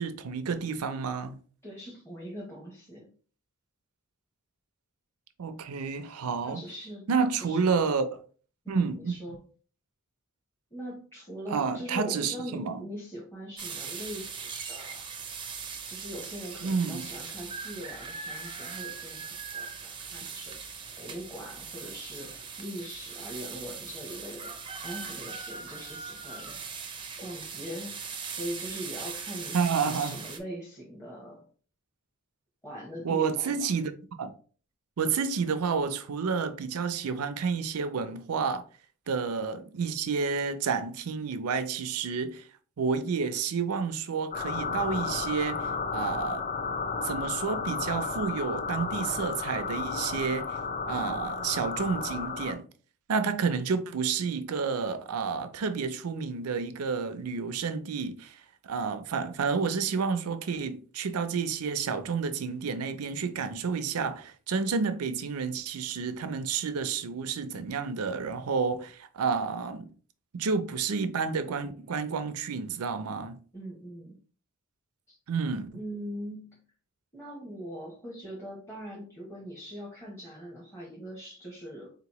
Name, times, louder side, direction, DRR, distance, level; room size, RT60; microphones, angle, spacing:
voice 1, 0.0-1.4 5.4-6.6 7.1-8.1 8.7-9.1 11.5-12.8 16.6-17.1 29.5-30.2 33.0-33.9 34.2-34.3 35.0-38.6 39.1-42.5 42.8-46.4 47.0-50.6 50.9-52.6 53.1-58.4 58.7-69.9 70.3-73.4 75.3-75.8, right 5 dB, 90° right, 0.5 m, -30 dB
voice 2, 1.6-3.1 6.4-7.1 7.4-7.7 8.6-9.4 10.7-15.1 15.9-20.6 21.0-26.6 27.2-31.5 32.6-33.7 73.5-74.2 75.1-75.2 75.7-76.6 77.1-81.9, equal, 10° left, 0.8 m, -41 dB
sound 1, 13.6-30.4, right 6 dB, 20° right, 0.5 m, -40 dB
sound 2, 44.3-52.5, left 5 dB, 35° left, 0.4 m, -33 dB
4.0 x 2.9 x 2.9 m
head